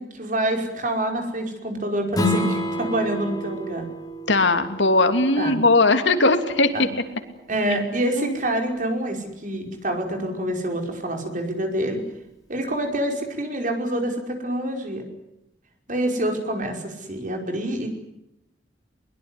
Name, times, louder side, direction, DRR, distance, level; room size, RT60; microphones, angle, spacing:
voice 1, 0.0-3.9 5.4-5.6 6.7-6.9 7.5-12.0 12.5-15.0 15.9-17.9, right 1 dB, 45° right, 3 dB, 5.3 m, -26 dB
Strum, 2.1-7.3, left 1 dB, 20° left, 3.8 m, -30 dB
voice 2, 4.3-6.9 8.2-8.4, left 2 dB, 80° left, 8 dB, 2.8 m, -19 dB
22.5 x 21.5 x 9.9 m, 0.84 s
head